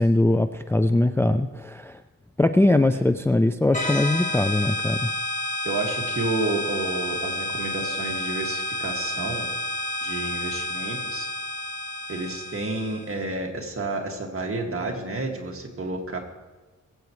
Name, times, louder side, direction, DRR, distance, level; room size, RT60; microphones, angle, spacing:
voice 1, 0.0-2.0 2.4-5.1, left 1 dB, 10° left, 9 dB, 0.4 m, -21 dB
sound 1, 3.7-13.1, left 1 dB, 25° left, 2.1 m, -30 dB
voice 2, 5.6-9.5 10.0-11.3 12.1-16.2, right 2 dB, 45° right, 1 dB, 2.0 m, -30 dB
21.0 x 8.2 x 3.2 m, 1.2 s
cardioid pair, 80°, 31 cm